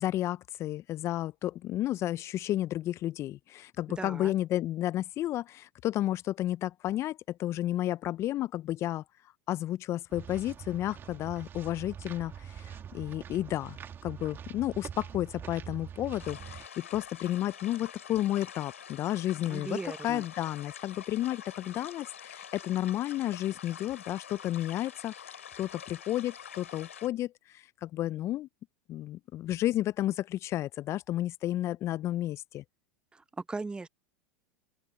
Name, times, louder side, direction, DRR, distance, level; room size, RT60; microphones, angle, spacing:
voice 1, 0.0-9.0 9.5-19.8 20.0-28.5 28.9-32.6, left 13 dB, 40° left, 0.6 m, -32 dB
voice 2, 3.9-4.3 19.5-20.2 33.1-33.9, right 3 dB, 10° right, 0.8 m, -38 dB
sound 1, 10.1-16.7, right 8 dB, 30° right, 2.1 m, -44 dB
sound 2, 16.2-27.1, left 8 dB, 85° left, 3.0 m, -46 dB
open air
hypercardioid pair, 90°, 7 cm